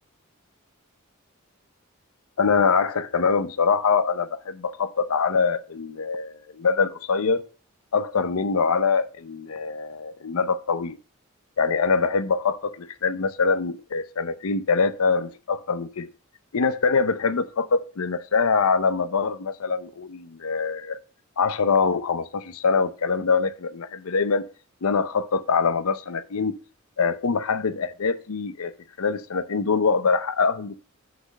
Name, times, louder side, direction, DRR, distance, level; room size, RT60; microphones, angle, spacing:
voice 1, 2.4-7.4 7.9-11.0 11.6-16.1 16.5-21.0 21.4-24.5 24.8-26.6 27.0-28.7 29.0-30.8, left 5 dB, 90° left, 0.6 m, -24 dB
6.1 x 5.1 x 6.4 m
head